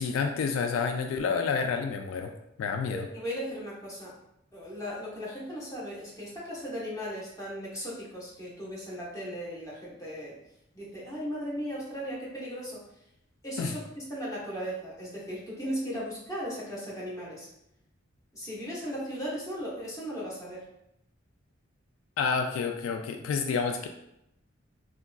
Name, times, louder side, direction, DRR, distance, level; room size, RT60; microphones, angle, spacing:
voice 1, 0.0-2.3 2.6-3.1 13.6-13.7 22.2-23.9, left 5 dB, 85° left, 5 dB, 0.3 m, -29 dB
voice 2, 2.9-4.1 4.5-10.3 10.7-12.8 13.4-13.8 14.1-17.5 18.3-20.6, equal, 15° left, -7 dB, 0.9 m, -37 dB
3.7 x 2.3 x 2.2 m, 0.80 s
head